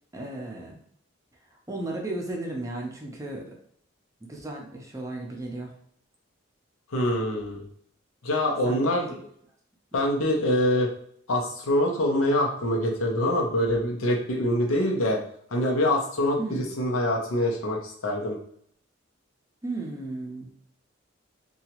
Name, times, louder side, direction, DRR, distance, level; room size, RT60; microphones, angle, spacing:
voice 1, 0.1-0.8 1.7-3.5 4.3-5.7 8.6-9.1 9.9-10.0 16.4-16.8 19.6-20.5, right 2 dB, 15° right, 0 dB, 0.4 m, -35 dB
voice 2, 6.9-7.6 8.2-9.3 9.9-10.9 11.3-15.2 15.5-18.4, left 1 dB, 85° left, 1 dB, 0.7 m, -25 dB
2.8 x 2.3 x 2.9 m, 0.65 s
head